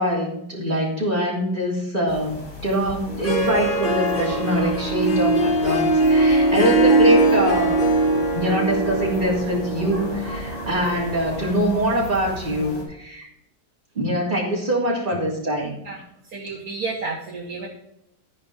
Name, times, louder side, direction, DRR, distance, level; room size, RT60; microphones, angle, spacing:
voice 1, 0.0-7.8 8.3-13.3 13.9-15.7, equal, 30° right, -4 dB, 3.4 m, -23 dB
sound 1, 2.1-12.8, left 1 dB, 85° left, 5.0 m, -36 dB
Harp, 3.1-11.7, right 2 dB, 35° left, 1.1 m, -21 dB
voice 2, 16.3-17.7, right 3 dB, 60° right, -3 dB, 1.8 m, -31 dB
14.0 x 5.1 x 5.2 m, 0.79 s
omnidirectional pair, 1.8 m